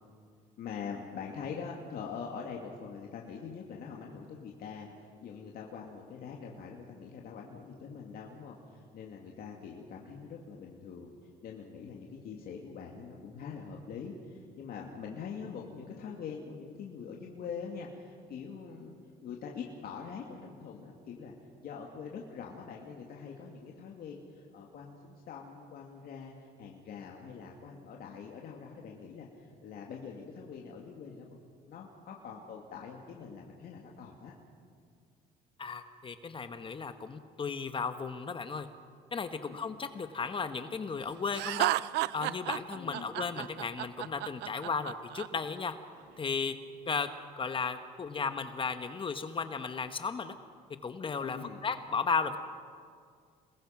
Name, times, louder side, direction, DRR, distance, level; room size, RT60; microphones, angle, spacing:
voice 1, 0.6-11.1 11.4-18.9 19.2-21.3 21.6-34.3 39.3-39.6 42.7-43.1 51.2-51.6, left 6 dB, 65° left, -1 dB, 2.5 m, -44 dB
voice 2, 35.6-38.7 39.1-41.7 42.1-45.7 46.2-46.5 46.9-47.1 47.4-50.3 50.8-52.4, left 5 dB, 30° left, 9 dB, 1.1 m, -35 dB
Laughter, 41.3-45.3, right 17 dB, 85° right, 0.5 m, -32 dB
28.5 x 21.0 x 6.0 m, 2.1 s
cardioid pair, 110°, 17 cm